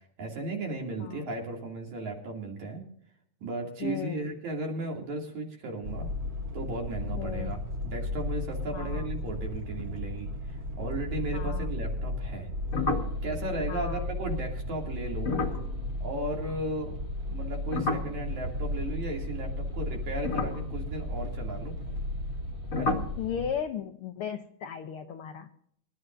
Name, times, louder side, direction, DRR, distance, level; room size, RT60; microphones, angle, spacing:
voice 1, 0.2-2.8 3.4-6.1 6.5-12.5 13.2-15.4 16.0-21.8 22.8-23.1, right 2 dB, 65° right, 0 dB, 4.2 m, -35 dB
voice 2, 3.8-4.3 7.2-7.5 8.7-9.1 11.3-11.7 13.7-14.1 23.2-25.5, left 8 dB, 80° left, 6 dB, 1.2 m, -36 dB
sound 1, 5.8-23.5, left 1 dB, 85° right, 0.5 m, -34 dB
sound 2, 12.7-17.1 17.3-19.5 20.1-22.5 22.7-23.2, left 3 dB, 35° left, 1.4 m, -34 dB
25.0 x 12.5 x 2.7 m, 0.68 s
omnidirectional pair, 3.6 m